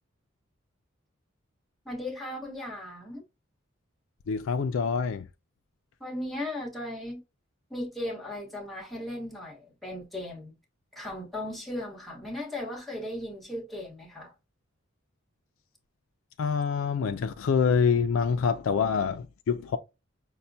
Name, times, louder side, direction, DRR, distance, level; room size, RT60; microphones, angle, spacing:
voice 1, 1.8-3.2 6.0-7.2 7.7-10.5 10.9-14.3, left 1 dB, ahead, 1.1 m, -37 dB
voice 2, 4.3-5.3 16.4-19.8, left 6 dB, 75° left, 0.3 m, -26 dB
5.5 x 2.1 x 2.6 m
head